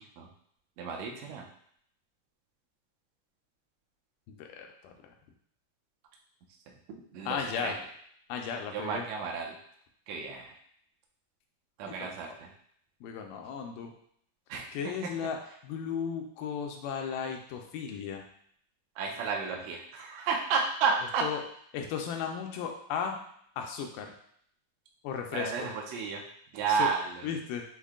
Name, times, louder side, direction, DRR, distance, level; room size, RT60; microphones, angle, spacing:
voice 1, 0.8-1.4 7.1-7.4 7.6-7.7 8.7-9.6 10.1-10.5 11.8-12.5 14.5-14.6 19.0-21.2 25.3-26.2 26.5-27.3, right 5 dB, 75° right, 1 dB, 1.6 m, -31 dB
voice 2, 4.3-4.9 7.3-7.8 8.3-9.1 11.9-12.4 13.0-13.9 14.7-15.4 15.6-18.2 21.2-21.4 21.7-23.2 23.6-24.1 25.0-25.7 26.7-26.9 27.2-27.6, left 7 dB, 85° left, 3 dB, 2.2 m, -35 dB
6.3 x 2.2 x 3.6 m, 0.66 s
omnidirectional pair, 3.9 m